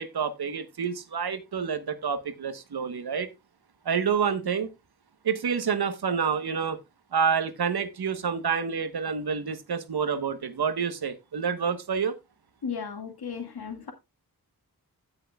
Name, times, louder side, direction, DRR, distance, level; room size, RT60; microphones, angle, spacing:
voice 1, 0.0-3.3 3.8-4.7 5.2-6.8 7.1-12.1, right 6 dB, 90° right, 1.1 m, -28 dB
voice 2, 12.6-13.9, left 6 dB, 85° left, 1.9 m, -35 dB
16.5 x 6.3 x 2.3 m
cardioid pair, 45°, 37 cm